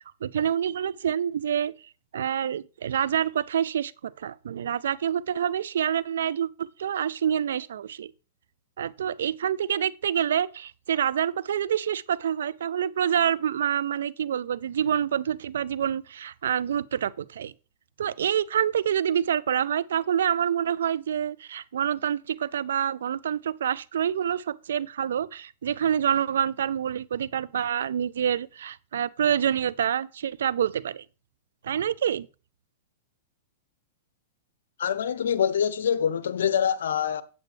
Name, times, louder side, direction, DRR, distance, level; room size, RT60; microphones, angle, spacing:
voice 1, 0.2-1.7 2.1-8.1 8.8-17.5 18.0-31.0 31.6-32.3, right 9 dB, 75° right, 0.4 m, -27 dB
voice 2, 34.8-37.2, left 8 dB, 75° left, 0.8 m, -25 dB
8.3 x 8.0 x 3.3 m
hypercardioid pair, 125°, 0 cm